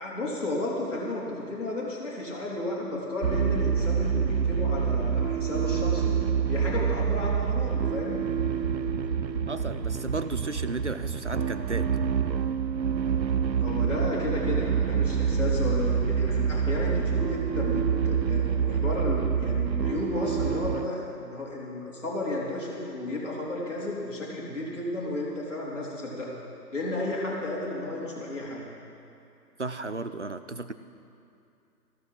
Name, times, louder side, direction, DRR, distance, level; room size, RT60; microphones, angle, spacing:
voice 1, 0.0-6.2 6.5-8.2 13.6-26.3 26.7-28.7, left 2 dB, 45° left, -5 dB, 3.9 m, -33 dB
sound 1, 3.2-20.9, right 7 dB, 85° right, 0.8 m, -27 dB
voice 2, 9.5-12.0 29.6-30.7, right 3 dB, 45° right, 11 dB, 0.5 m, -34 dB
14.5 x 13.0 x 5.6 m, 2.6 s
figure-of-eight pair, 160°, 50 cm